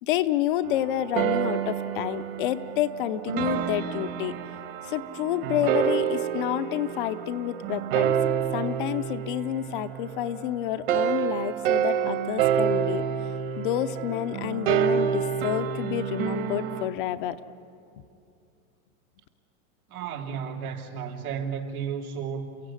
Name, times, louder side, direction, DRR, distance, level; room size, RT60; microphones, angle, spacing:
voice 1, 0.0-4.3 4.8-8.2 8.5-13.0 13.6-17.4, left 12 dB, 35° left, 11 dB, 0.7 m, -29 dB
sound 1, 0.6-10.3 10.9-16.9, right 9 dB, 40° right, 1.5 m, -28 dB
voice 2, 19.9-22.6, right 7 dB, 80° right, 2 dB, 3.1 m, -33 dB
29.0 x 15.5 x 9.7 m, 2.5 s
supercardioid pair, 155°, 43 cm